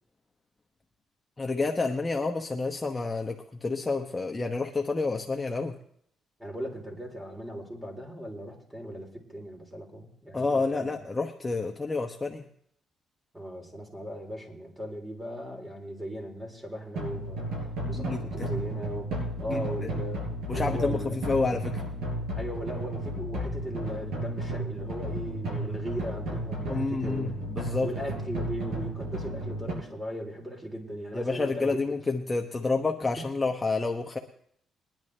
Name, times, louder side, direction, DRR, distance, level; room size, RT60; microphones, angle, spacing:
voice 1, 1.4-5.7 10.3-12.5 17.8-18.5 19.5-19.9 20.5-21.8 26.7-27.9 31.1-34.2, left 3 dB, 20° left, 2 dB, 1.0 m, -29 dB
voice 2, 6.4-10.9 13.3-17.5 17.9-20.3 20.5-21.2 22.3-27.4 27.8-31.8, equal, 10° right, 0 dB, 3.5 m, -38 dB
sound 1, 17.0-29.7, right 1 dB, 85° right, 6.1 m, -33 dB
21.5 x 10.5 x 3.3 m, 0.66 s
cardioid pair, 90°, 0 cm